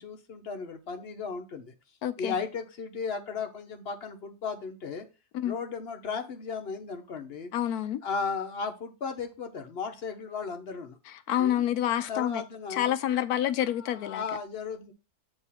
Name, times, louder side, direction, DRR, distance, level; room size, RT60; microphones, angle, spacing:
voice 1, 0.0-1.7 2.2-5.0 5.4-7.5 8.0-11.0 11.4-11.6 12.1-13.0 13.7-14.9, left 5 dB, 45° left, 0.9 m, -35 dB
voice 2, 2.0-2.3 5.3-5.6 7.5-8.0 11.3-12.4 12.7-14.2, left 11 dB, 70° left, 1.0 m, -28 dB
8.1 x 2.9 x 5.6 m
omnidirectional pair, 1.8 m